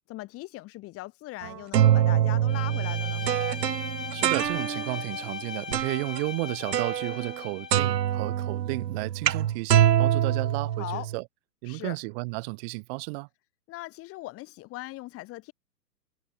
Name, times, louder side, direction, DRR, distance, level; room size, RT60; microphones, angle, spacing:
voice 1, 0.1-3.3 10.8-11.1 11.7-12.0 13.7-15.5, left 18 dB, 25° left, 5.0 m, -39 dB
sound 1, 1.4-5.0 5.7-6.2 6.7-7.4 7.7-11.2, right 11 dB, 75° right, 0.9 m, -25 dB
Bowed string instrument, 2.5-7.8, left 6 dB, 80° left, 4.5 m, -38 dB
voice 2, 4.1-11.2 11.6-13.3, right 28 dB, 35° right, 4.2 m, -33 dB
hypercardioid pair, 130°, 49 cm